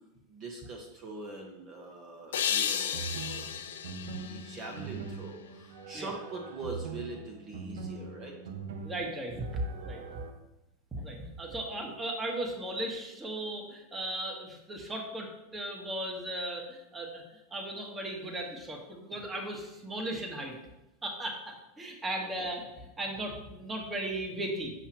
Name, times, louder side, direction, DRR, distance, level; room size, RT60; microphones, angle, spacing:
voice 1, 0.3-3.5 4.1-8.3 22.2-22.3, right 2 dB, 40° right, 1 dB, 1.2 m, -43 dB
sound 1, 2.3-5.5, left 8 dB, 80° left, 0.6 m, -34 dB
sound 2, 2.9-10.3, right 4 dB, 75° right, 0.7 m, -42 dB
voice 2, 8.8-10.0 10.9-17.2 17.5-20.5 21.0-24.7, right 1 dB, 15° right, 0 dB, 1.5 m, -36 dB
8.0 x 5.8 x 3.1 m, 0.97 s
hypercardioid pair, 100°, 0 cm